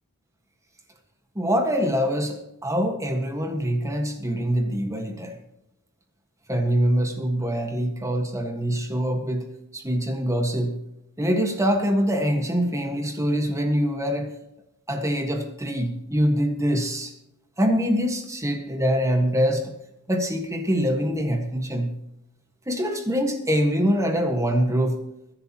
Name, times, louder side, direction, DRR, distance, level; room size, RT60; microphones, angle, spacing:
voice 1, 1.3-5.4 6.5-10.8 11.2-14.3 14.9-17.1 17.6-19.7 20.1-22.0 22.7-25.0, equal, 15° right, 4 dB, 1.6 m, -24 dB
22.0 x 10.5 x 3.0 m, 0.85 s
head